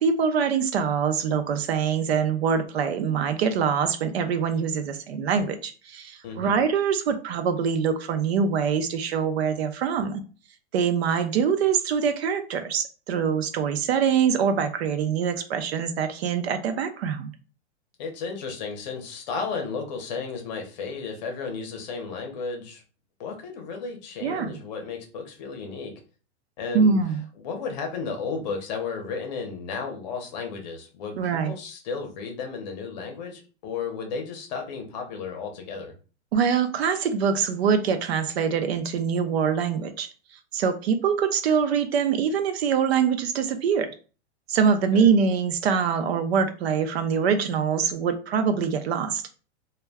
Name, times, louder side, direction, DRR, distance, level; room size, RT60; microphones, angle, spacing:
voice 1, 0.0-10.2 10.7-17.3 24.2-24.5 26.7-27.2 31.2-31.5 36.3-40.1 40.5-43.9 44.5-49.2, right 6 dB, 65° right, 8 dB, 0.5 m, -24 dB
voice 2, 18.0-22.8 23.2-25.9 26.6-27.0 27.4-31.2 31.4-35.9 44.9-45.1, left 5 dB, 40° left, 3 dB, 0.7 m, -33 dB
2.2 x 2.1 x 3.4 m, 0.37 s
supercardioid pair, 170°, 34 cm